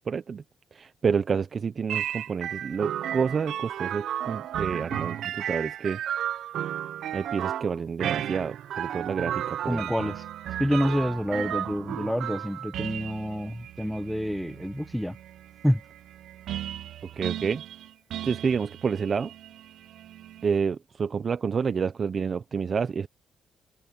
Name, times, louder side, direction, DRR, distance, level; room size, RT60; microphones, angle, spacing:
voice 1, 0.1-0.4 0.7-6.0 7.1-9.9 17.2-17.6 18.2-19.3 20.4-23.1, right 6 dB, 45° right, 0.8 m, -29 dB
sound 1, 1.9-20.6, right 11 dB, 75° right, 0.7 m, -34 dB
voice 2, 9.7-10.2 10.6-15.2 15.6-15.8, equal, ahead, 0.8 m, -28 dB
cardioid pair, 90°, 0 cm